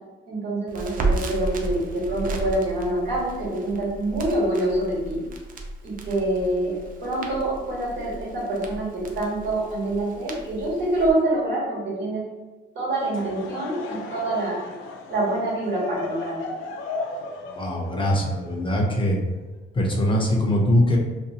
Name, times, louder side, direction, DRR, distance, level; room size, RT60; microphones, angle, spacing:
voice 1, 0.3-5.2 5.8-12.2 12.7-14.6 15.1-16.4, right 1 dB, 70° right, -6 dB, 1.5 m, -26 dB
Crackle, 0.7-11.1, right 3 dB, 45° right, 0.5 m, -33 dB
Laughter / Crowd, 12.9-19.4, left 3 dB, 80° left, 0.4 m, -36 dB
voice 2, 17.5-19.2 19.7-21.0, equal, 25° left, -1 dB, 0.6 m, -22 dB
2.7 x 2.2 x 2.7 m, 1.2 s
cardioid pair, 90°, 20 cm